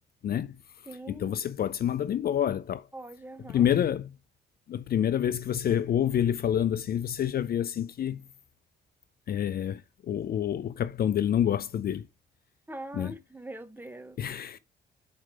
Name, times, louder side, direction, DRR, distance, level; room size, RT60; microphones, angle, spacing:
voice 1, 0.2-0.6 1.1-2.9 3.5-4.2 4.7-8.2 9.3-12.1 12.9-13.1 14.2-14.6, left 10 dB, 50° left, 0.5 m, -28 dB
voice 2, 0.9-1.4 2.9-3.7 12.7-14.2, right 2 dB, 10° right, 1.0 m, -43 dB
6.4 x 4.6 x 4.9 m
cardioid pair, 90°, 20 cm